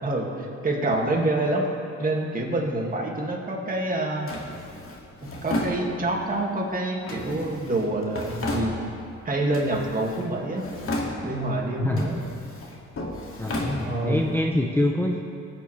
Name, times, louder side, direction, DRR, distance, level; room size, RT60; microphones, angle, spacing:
voice 1, 0.0-1.6 2.0-4.4 5.2-8.8 9.2-10.7 11.2-12.1 13.8-14.2, right 2 dB, 30° right, -1 dB, 2.1 m, -27 dB
Drawer open or close, 4.3-6.3 7.1-9.2 9.5-10.3 10.6-11.5 11.9-14.3, left 1 dB, 45° left, 2.2 m, -33 dB
voice 2, 11.8-12.1 13.4-15.2, left 1 dB, 5° left, 1 dB, 0.7 m, -25 dB
18.5 x 8.9 x 3.3 m, 2.5 s
cardioid pair, 90°, 30 cm